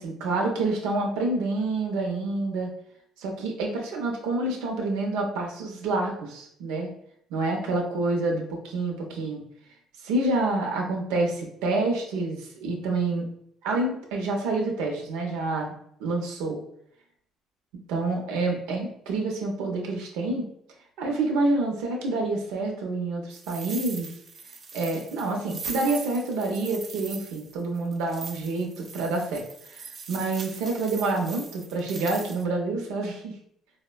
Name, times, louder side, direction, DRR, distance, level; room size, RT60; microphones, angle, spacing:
voice 1, 0.0-2.7 3.2-6.9 7.3-9.4 10.0-13.2 13.6-15.7 16.0-16.6 17.9-20.4 21.0-24.1 24.7-33.3, right 2 dB, 90° right, 1 dB, 0.6 m, -28 dB
sound 1, 23.3-32.4, right 5 dB, 45° right, 0.4 m, -41 dB
4.1 x 2.1 x 2.2 m, 0.69 s
cardioid pair, 90°, 0 cm